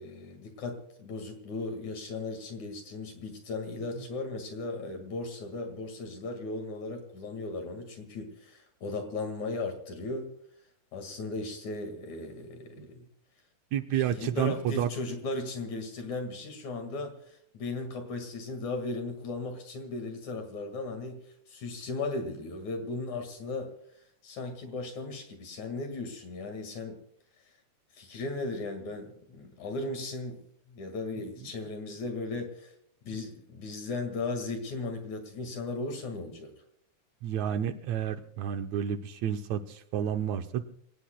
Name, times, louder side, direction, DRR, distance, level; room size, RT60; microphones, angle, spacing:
voice 1, 0.0-10.3 10.9-13.0 13.9-21.2 21.5-23.7 24.2-27.0 27.9-30.4 30.7-32.7 33.0-36.5, left 3 dB, 60° left, 5 dB, 3.1 m, -36 dB
voice 2, 13.7-14.9 33.1-33.2 37.2-40.6, right 9 dB, 75° right, 8 dB, 1.8 m, -30 dB
28.0 x 18.0 x 2.2 m, 0.67 s
omnidirectional pair, 3.9 m